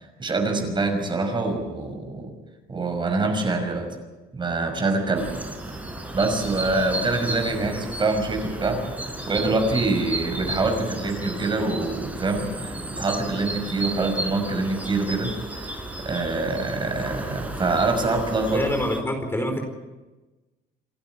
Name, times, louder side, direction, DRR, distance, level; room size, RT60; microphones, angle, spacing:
voice 1, 0.2-2.3 2.7-3.9 4.3-5.3 6.1-8.8 9.3-18.6, right 3 dB, 30° right, 5 dB, 5.7 m, -25 dB
sound 1, 5.2-19.0, right 1 dB, 10° right, 4.0 m, -33 dB
voice 2, 18.5-19.6, left 1 dB, 15° left, 4 dB, 4.4 m, -26 dB
28.5 x 12.0 x 9.9 m, 1.2 s
cardioid pair, 110°, 17 cm